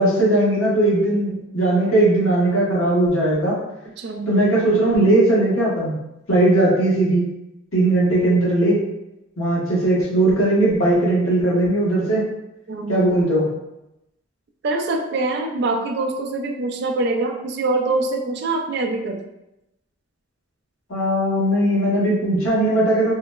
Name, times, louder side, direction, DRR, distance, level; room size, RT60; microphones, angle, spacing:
voice 1, 0.0-3.6 4.3-6.0 6.3-7.3 7.7-8.8 9.4-12.3 12.9-13.5 20.9-23.1, right 1 dB, 85° left, -6 dB, 1.0 m, -18 dB
voice 2, 4.0-4.3 12.7-13.0 14.6-19.2, right 2 dB, 55° right, 3 dB, 0.3 m, -24 dB
3.8 x 2.0 x 2.2 m, 0.91 s
head